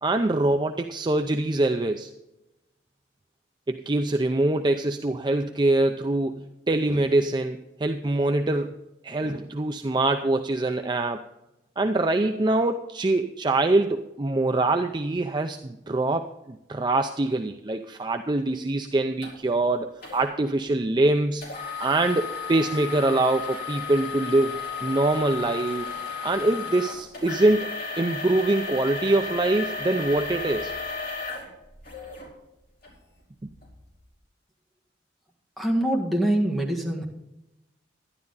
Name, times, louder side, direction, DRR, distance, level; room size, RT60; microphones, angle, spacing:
voice 1, 0.0-2.1 3.7-8.8 9.0-11.2 11.8-21.4 21.8-25.9 26.2-30.7, right 2 dB, 25° right, 6 dB, 0.5 m, -24 dB
sound 1, 19.2-19.3 20.0-20.2 21.4-32.3 32.8-32.9 33.5-33.7, left 5 dB, 55° left, 4.6 m, -34 dB
voice 2, 35.6-37.1, right 1 dB, ahead, -1 dB, 1.7 m, -24 dB
11.5 x 10.5 x 4.0 m, 0.92 s
head